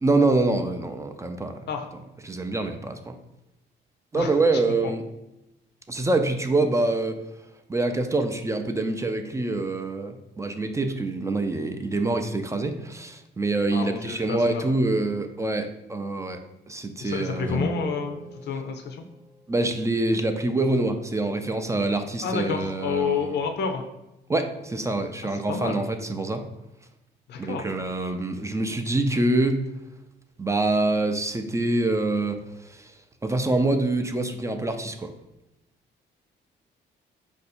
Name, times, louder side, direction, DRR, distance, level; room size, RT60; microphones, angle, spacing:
voice 1, 0.0-1.5 2.2-3.1 4.1-5.0 5.9-7.2 7.7-16.4 16.7-17.6 19.5-23.3 24.3-26.4 27.4-29.6 30.4-32.4 32.7-32.8 33.2-35.1, right 2 dB, 15° right, 6 dB, 0.4 m, -25 dB
voice 2, 13.7-14.7 17.0-19.0 22.2-23.8 25.5-25.8 27.3-27.7, left 5 dB, 60° left, 4 dB, 0.6 m, -29 dB
Guitar, 17.4-20.0, left 1 dB, 5° left, 0.8 m, -35 dB
4.5 x 2.7 x 4.2 m, 0.94 s
cardioid pair, 90°, 20 cm